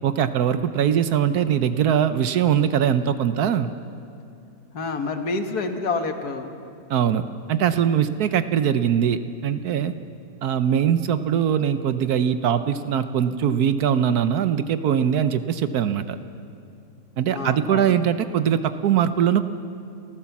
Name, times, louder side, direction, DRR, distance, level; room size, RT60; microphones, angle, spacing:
voice 1, 0.0-3.7 6.9-7.2 7.5-9.9 10.4-16.2 17.2-19.4, right 9 dB, 75° right, 11 dB, 1.3 m, -21 dB
voice 2, 4.7-6.5 17.3-18.0, left 3 dB, 70° left, 6 dB, 2.0 m, -28 dB
28.5 x 14.5 x 7.2 m, 2.7 s
omnidirectional pair, 1.7 m